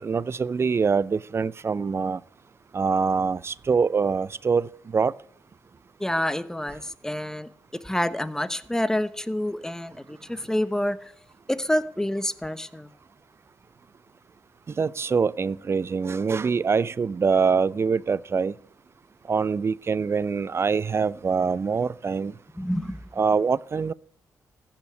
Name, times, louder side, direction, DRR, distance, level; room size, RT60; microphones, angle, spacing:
voice 1, 0.0-2.2 2.7-5.1 14.8-18.5 19.3-22.3 23.2-23.9, right 5 dB, 40° right, 0.5 m, -24 dB
voice 2, 6.0-7.5 7.8-11.1 11.5-12.9 22.6-23.0, left 1 dB, 10° left, 1.0 m, -28 dB
14.5 x 5.9 x 9.3 m
cardioid pair, 65°, 7 cm